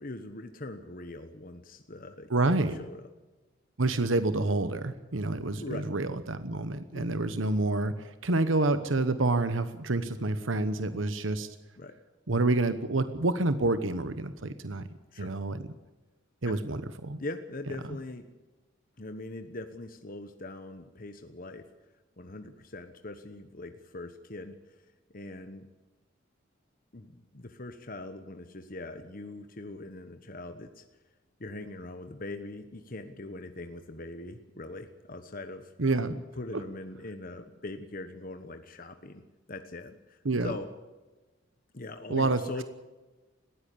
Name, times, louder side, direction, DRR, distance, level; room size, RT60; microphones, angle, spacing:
voice 1, 0.0-3.1 5.6-5.9 6.9-7.2 11.8-11.9 15.1-15.3 16.5-16.6 17.2-18.3 19.0-21.7 22.2-24.9 25.1-25.7 26.9-30.8 31.4-35.7 36.0-39.2 39.5-40.7 41.7-42.6, left 2 dB, 45° left, 7 dB, 1.2 m, -41 dB
voice 2, 2.3-2.7 3.8-11.5 12.3-14.8 15.2-15.6 16.4-17.2 35.8-36.2 36.5-36.6 40.2-40.5 42.1-42.4, right 2 dB, 75° right, 11 dB, 1.1 m, -28 dB
21.0 x 15.5 x 8.6 m, 1.2 s
head